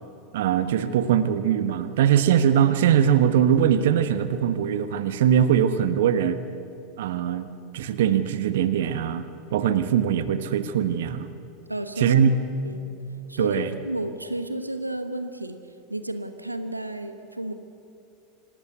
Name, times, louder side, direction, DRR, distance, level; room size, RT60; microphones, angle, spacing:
voice 1, 0.3-6.4 7.0-7.5 7.7-11.3 12.0-12.3 13.4-13.7, right 9 dB, 60° right, 12 dB, 1.3 m, -21 dB
voice 2, 11.7-12.2 12.6-12.9 13.3-17.5, right 1 dB, 85° right, 9 dB, 1.1 m, -32 dB
26.0 x 18.5 x 8.3 m, 2.5 s
figure-of-eight pair, 80°, 0 cm